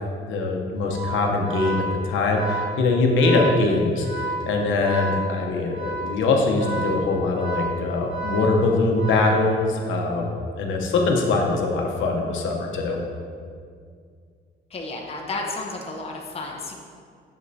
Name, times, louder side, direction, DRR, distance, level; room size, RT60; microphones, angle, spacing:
voice 1, 0.2-4.1 4.4-10.3 10.6-13.0, left 3 dB, 80° left, 1 dB, 0.8 m, -22 dB
Organ, 0.8-9.9, right 2 dB, 50° left, 1.4 m, -32 dB
voice 2, 14.7-16.7, left 2 dB, 30° left, 0 dB, 0.8 m, -32 dB
7.0 x 5.3 x 2.7 m, 2.2 s
cardioid pair, 90°, 20 cm